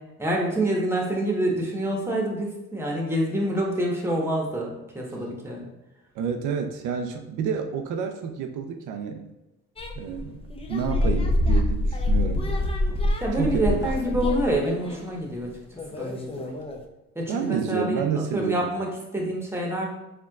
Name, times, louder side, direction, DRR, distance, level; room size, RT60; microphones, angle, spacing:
voice 1, 0.2-4.7 4.9-5.7 12.3-12.5 13.2-15.5 15.9-16.6 17.1-19.8, right 1 dB, 10° right, -1 dB, 1.1 m, -27 dB
voice 2, 6.2-9.3 10.0-10.4 10.7-12.5 13.4-14.2 17.3-18.7, right 6 dB, 85° right, 5 dB, 0.5 m, -29 dB
sound 1, 9.8-15.0 15.8-16.8, left 1 dB, 20° left, 0.5 m, -26 dB
4.4 x 3.6 x 2.3 m, 0.96 s
cardioid pair, 90°, 30 cm